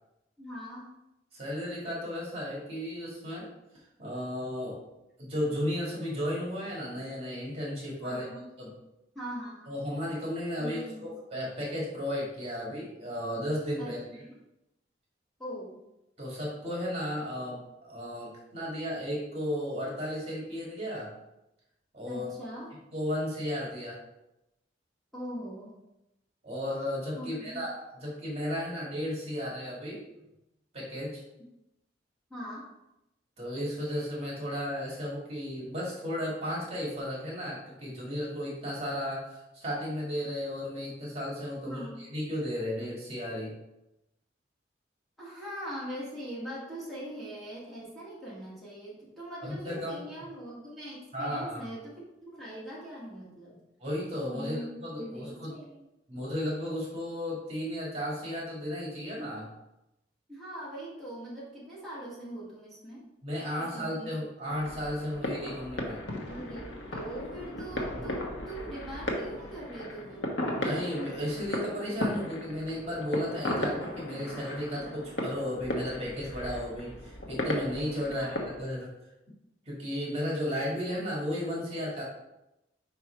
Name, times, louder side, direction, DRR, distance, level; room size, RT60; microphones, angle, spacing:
voice 1, 0.4-0.9 8.0-8.5 9.1-9.7 10.6-11.1 13.8-14.4 15.4-15.8 22.1-22.8 25.1-25.8 27.2-27.6 32.3-32.7 41.6-42.0 45.2-53.6 54.3-55.9 60.3-63.1 63.6-64.1 66.3-70.4 78.0-78.4, equal, ahead, -9 dB, 1.9 m, -41 dB
voice 2, 1.3-3.5 4.0-4.8 5.2-8.3 8.6-8.7 9.7-10.8 11.3-14.0 16.2-21.1 21.9-22.3 22.9-24.0 26.4-30.1 30.7-31.2 33.4-43.5 49.4-50.0 51.1-51.7 53.8-55.6 56.1-59.5 63.2-66.1 70.6-78.9 79.7-82.0, equal, 35° right, -4 dB, 2.1 m, -34 dB
sound 1, 64.5-78.7, left 1 dB, 85° left, 1.2 m, -36 dB
5.2 x 4.6 x 4.4 m, 0.89 s
head